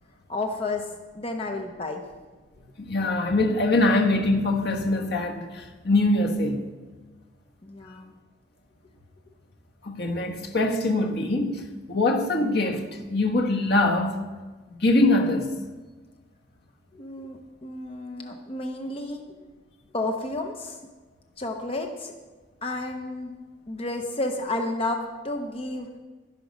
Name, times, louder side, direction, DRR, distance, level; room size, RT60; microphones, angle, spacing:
voice 1, 0.3-0.9 1.1-2.0 7.6-8.1 16.9-19.2 19.9-20.8 21.4-22.1 22.6-23.3 23.7-25.9, left 2 dB, 35° left, 0.8 m, -31 dB
voice 2, 2.8-6.6 9.8-14.2 14.7-15.6, left 2 dB, 65° left, 1.3 m, -23 dB
12.0 x 11.0 x 5.2 m
head